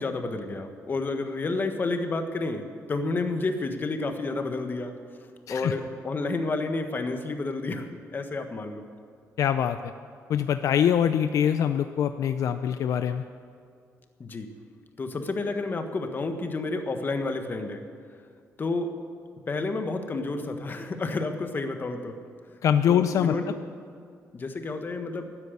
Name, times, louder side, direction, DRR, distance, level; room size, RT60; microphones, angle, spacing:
voice 1, 0.0-2.6 2.9-4.9 5.5-8.8 14.2-14.5 15.0-17.8 18.6-18.9 19.5-22.1 22.9-23.5 24.3-25.3, left 3 dB, 35° left, 6 dB, 1.4 m, -30 dB
voice 2, 9.4-9.9 10.3-13.2 22.6-23.3, left 9 dB, 70° left, 9 dB, 0.5 m, -24 dB
13.0 x 9.7 x 8.2 m, 2.3 s
cardioid pair, 110°, 6 cm